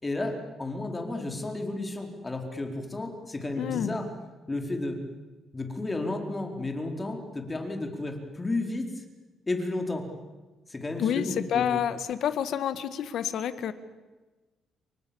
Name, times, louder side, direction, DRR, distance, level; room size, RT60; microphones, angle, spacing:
voice 1, 0.0-4.1 4.5-5.0 5.5-9.0 9.5-10.1 10.7-11.6, left 2 dB, 20° left, 3 dB, 4.5 m, -32 dB
voice 2, 3.6-4.0 11.0-13.7, left 9 dB, 70° left, 12 dB, 1.8 m, -28 dB
29.5 x 24.0 x 7.2 m, 1.2 s
cardioid pair, 90°, 0 cm